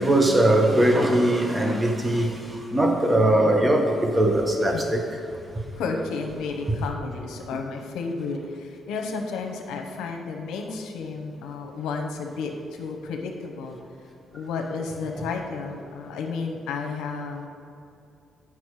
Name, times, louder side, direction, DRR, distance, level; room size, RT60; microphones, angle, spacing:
voice 1, 0.0-5.0, right 1 dB, 20° right, 3 dB, 1.1 m, -20 dB
voice 2, 5.7-13.8 14.3-17.5, left 4 dB, 90° left, 3 dB, 0.9 m, -32 dB
8.4 x 6.0 x 4.8 m, 2.5 s
cardioid pair, 90°, 0 cm